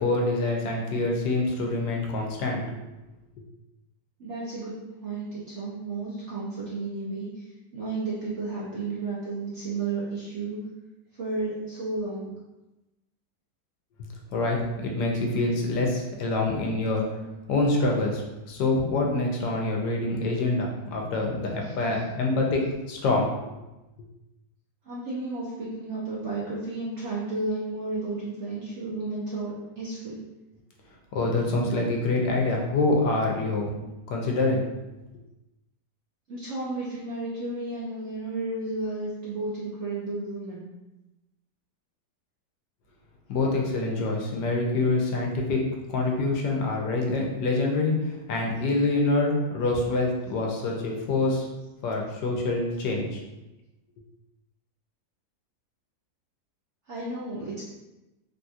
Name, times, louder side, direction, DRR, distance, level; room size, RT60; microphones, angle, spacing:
voice 1, 0.0-2.8 14.0-17.0 17.5-23.3 31.1-33.7 34.1-34.6 43.3-51.5 51.8-53.2, left 2 dB, 80° left, 0 dB, 1.2 m, -26 dB
voice 2, 4.2-4.7 5.0-7.4 7.7-10.6 11.2-12.3 24.8-30.2 36.3-40.6 56.9-57.6, right 3 dB, 60° right, -8 dB, 0.8 m, -32 dB
3.5 x 2.7 x 2.4 m, 1.0 s
omnidirectional pair, 1.8 m